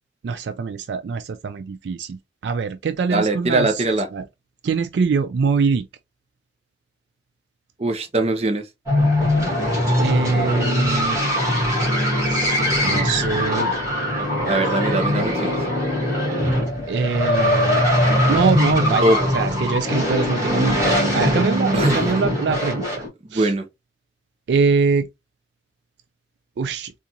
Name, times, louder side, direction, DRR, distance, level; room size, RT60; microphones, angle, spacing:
voice 1, 0.2-3.8 4.1-4.2 4.6-5.9 10.0-11.2 12.3-13.7 14.6-14.7 16.9-17.8 18.3-23.0 23.3-23.5 24.5-25.1 26.6-26.9, right 5 dB, 70° right, 0.3 m, -23 dB
voice 2, 3.1-4.1 7.8-8.6 14.2-15.6 19.0-19.2 21.7-22.0 23.2-23.6, right 2 dB, 35° right, 0.6 m, -21 dB
sound 1, 8.9-23.1, left 1 dB, 15° right, 1.8 m, -21 dB
3.8 x 2.4 x 2.8 m
head